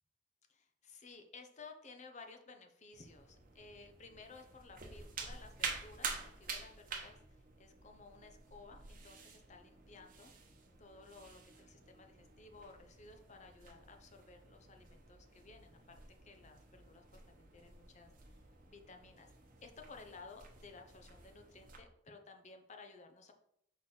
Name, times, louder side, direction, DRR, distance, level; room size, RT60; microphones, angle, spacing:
voice 1, 0.5-10.3 10.8-18.1 18.7-19.3 19.6-23.3, left 3 dB, 35° left, 5 dB, 0.7 m, -56 dB
sound 1, 2.9-21.8, right 5 dB, 45° right, 1.0 m, -49 dB
6.1 x 4.0 x 4.3 m, 0.74 s
head